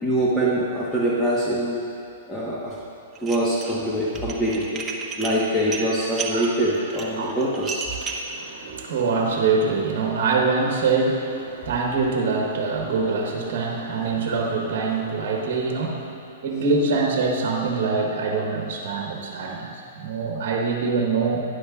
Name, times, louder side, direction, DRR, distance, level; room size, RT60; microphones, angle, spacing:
voice 1, 0.0-1.8 2.3-2.7 3.2-4.9 5.2-7.8, right 1 dB, 10° left, -7 dB, 1.2 m, -24 dB
Dishes pots and pans, 3.1-3.8 4.1-8.3, right 4 dB, 20° right, 0.8 m, -32 dB
voice 2, 8.0-16.1 16.4-21.4, right 4 dB, 60° right, 0 dB, 1.2 m, -24 dB
11.5 x 10.0 x 2.5 m, 2.7 s
hypercardioid pair, 130°, 0 cm